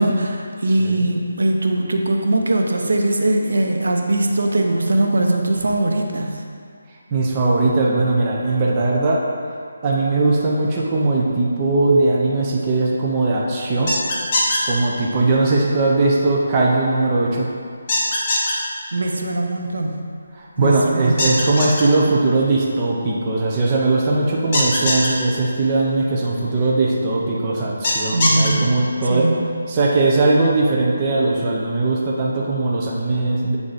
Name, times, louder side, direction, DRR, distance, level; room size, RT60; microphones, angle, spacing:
voice 1, 0.0-6.4 18.9-20.0 20.6-21.4 28.1-29.5, right 1 dB, 80° right, 2 dB, 0.8 m, -21 dB
voice 2, 7.1-9.2 9.8-13.9 14.6-17.5 20.3-29.3 29.7-33.6, right 2 dB, 15° right, -4 dB, 0.5 m, -19 dB
sound 1, 13.9-14.6 17.9-18.5 21.2-21.8 24.5-25.1 27.8-28.5, left 2 dB, 25° left, 0.8 m, -20 dB
7.9 x 3.6 x 4.0 m, 2.2 s
hypercardioid pair, 175°, 0 cm